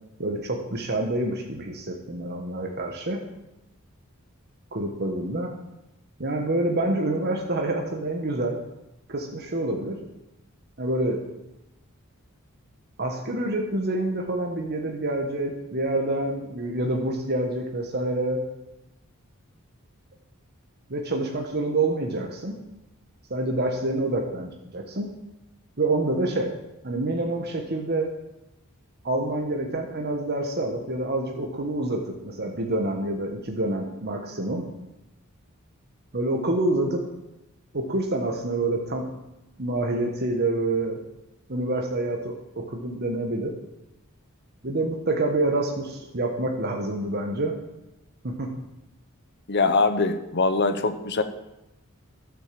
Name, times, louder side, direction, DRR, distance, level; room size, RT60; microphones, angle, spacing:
voice 1, 0.2-3.2 4.7-5.5 6.2-8.6 9.1-10.0 10.8-11.2 13.0-18.4 20.9-22.6 23.3-25.1 25.8-26.5 26.8-28.1 29.0-34.7 36.1-37.0 37.7-39.1 39.6-41.0 41.5-43.6 44.6-47.6 48.2-48.6, right 2 dB, 50° right, 2 dB, 1.4 m, -27 dB
voice 2, 49.5-51.2, left 3 dB, 50° left, 10 dB, 1.0 m, -22 dB
12.0 x 7.6 x 7.6 m, 0.92 s
head